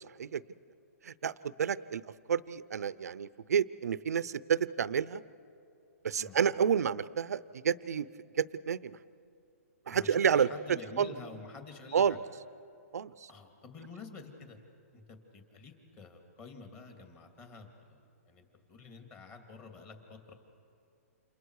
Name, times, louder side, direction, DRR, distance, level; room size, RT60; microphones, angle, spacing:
voice 1, 1.6-2.0 2.3-5.2 6.0-8.1 8.4-9.0 9.9-10.5 11.0-11.1 11.9-12.2 12.9-13.1, right 7 dB, 80° right, 17 dB, 0.7 m, -29 dB
voice 2, 9.9-12.3 13.3-14.6 14.9-20.3, left 4 dB, 20° left, 3 dB, 2.7 m, -49 dB
30.0 x 28.0 x 4.8 m, 2.6 s
hypercardioid pair, 160°, 8 cm